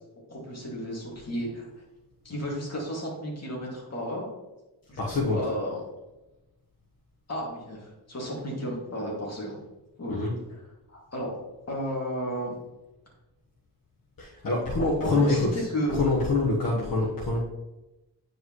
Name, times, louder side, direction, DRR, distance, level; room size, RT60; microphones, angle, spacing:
voice 1, 0.3-1.7 2.2-4.3 4.9-5.8 7.3-9.6 10.0-10.6 10.9-11.3 11.7-12.5 15.0-16.0 16.6-16.9, equal, 40° left, -3 dB, 2.6 m, -33 dB
voice 2, 5.0-5.4 10.1-10.4 14.2-17.4, left 2 dB, 60° left, -6 dB, 1.4 m, -26 dB
9.5 x 5.1 x 3.2 m, 1.0 s
wide cardioid pair, 105°, 39 cm